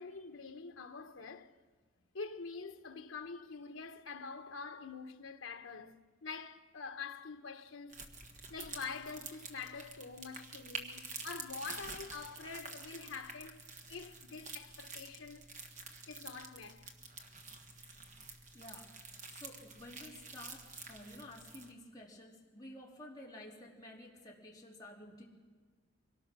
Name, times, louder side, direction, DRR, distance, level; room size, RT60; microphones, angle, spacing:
voice 1, 0.0-1.5 2.1-8.0 8.5-13.6 13.9-15.5 16.1-16.9, left 5 dB, 80° left, 1.1 m, -46 dB
sound 1, 7.9-21.7, right 4 dB, 35° right, 1.6 m, -48 dB
voice 2, 18.5-25.2, left 1 dB, 20° left, 3.3 m, -52 dB
24.5 x 18.5 x 6.1 m
head